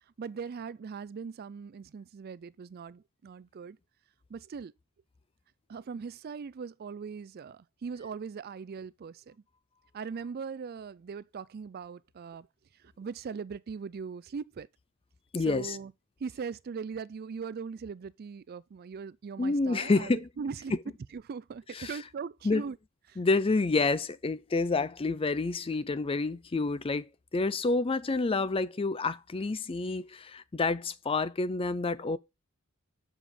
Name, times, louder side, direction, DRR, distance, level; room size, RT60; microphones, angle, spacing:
voice 1, 0.2-3.8 4.3-4.7 5.7-9.4 9.9-12.5 13.0-14.7 15.5-15.9 16.2-20.8 21.1-22.8 23.1-23.2, right 5 dB, 45° right, 0.3 m, -40 dB
voice 2, 15.3-15.8 19.4-20.3 20.7-20.8 21.7-22.0 22.4-22.6 23.2-32.2, left 3 dB, 25° left, 0.4 m, -28 dB
7.2 x 5.0 x 5.4 m
head